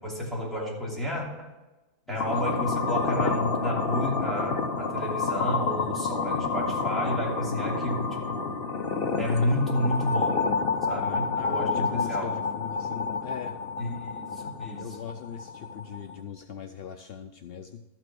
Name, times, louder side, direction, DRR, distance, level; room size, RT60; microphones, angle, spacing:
voice 1, 0.0-1.5 2.1-8.5 9.2-10.5 10.9-12.4 13.8-15.0, equal, ahead, -5 dB, 2.8 m, -31 dB
voice 2, 2.1-2.4 9.4-9.6 10.9-13.6 14.8-17.8, left 7 dB, 65° left, 6 dB, 0.6 m, -40 dB
sound 1, 2.2-16.2, left 4 dB, 45° left, 0.9 m, -29 dB
12.5 x 6.0 x 6.1 m, 1.1 s
omnidirectional pair, 1.6 m